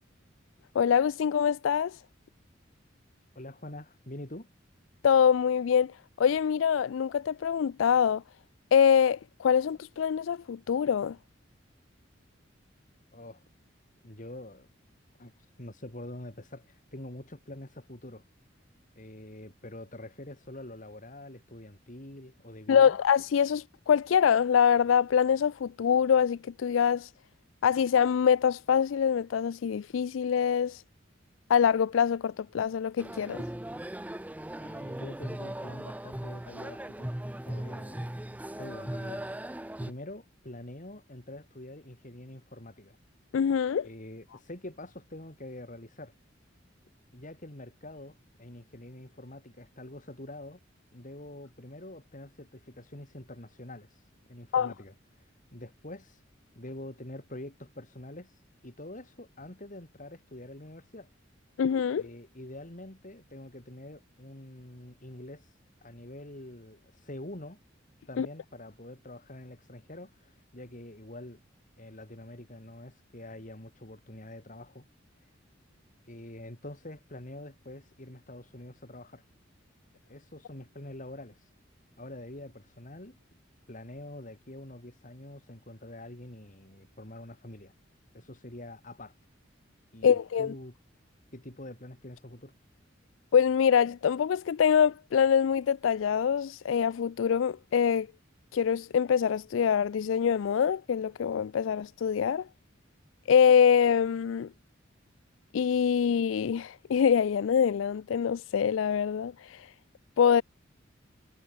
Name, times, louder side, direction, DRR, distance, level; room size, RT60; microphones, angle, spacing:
voice 1, 0.7-2.0 5.0-8.2 8.7-11.2 22.7-27.1 27.6-30.8 31.5-33.4 43.3-43.9 54.5-54.7 61.6-62.1 68.2-68.3 90.0-90.5 93.3-98.1 98.5-102.5 103.3-104.5 105.5-109.7 110.2-110.4, left 7 dB, 85° left, 0.4 m, -24 dB
voice 2, 3.4-4.5 13.1-13.4 14.0-14.7 15.2-18.2 19.0-23.0 34.6-37.2 37.5-39.2 39.5-43.0 43.8-46.1 47.1-50.6 50.9-53.9 54.3-54.9 55.5-56.2 56.6-58.3 58.6-61.1 62.0-65.5 65.8-67.6 68.1-71.4 71.8-74.8 76.1-79.2 80.1-81.4 82.0-83.2 83.7-87.7 88.1-89.1 89.9-90.7 91.3-92.5, left 1 dB, 45° left, 3.9 m, -45 dB
sound 1, 33.0-39.9, right 1 dB, 10° right, 0.6 m, -38 dB
head